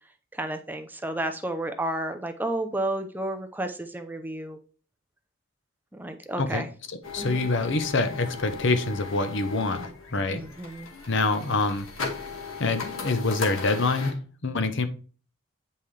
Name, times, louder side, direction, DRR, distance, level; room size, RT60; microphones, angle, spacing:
voice 1, 0.3-4.6 5.9-6.7 7.2-7.4 10.3-10.9, right 1 dB, 10° right, 6 dB, 0.6 m, -31 dB
voice 2, 6.4-10.4 11.1-11.9 12.6-14.2 14.4-14.9, left 3 dB, 55° left, 9 dB, 0.9 m, -26 dB
sound 1, 7.0-14.1, left 5 dB, 75° left, 1.7 m, -37 dB
8.9 x 5.6 x 3.3 m, 0.39 s
head